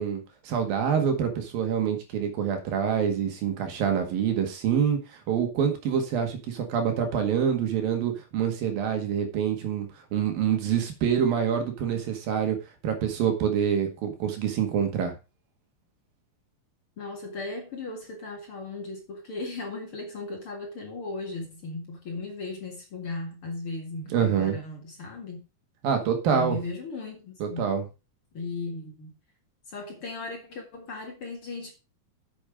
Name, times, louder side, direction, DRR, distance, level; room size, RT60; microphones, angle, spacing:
voice 1, 0.0-9.9 10.1-12.6 12.8-15.1 24.1-24.6 25.8-26.6 27.4-27.8, right 8 dB, 75° right, 3.6 m, -26 dB
voice 2, 17.0-25.4 26.3-27.6 28.3-29.1 29.7-31.7, left 3 dB, 45° left, 2.4 m, -36 dB
9.0 x 7.7 x 5.0 m
omnidirectional pair, 4.2 m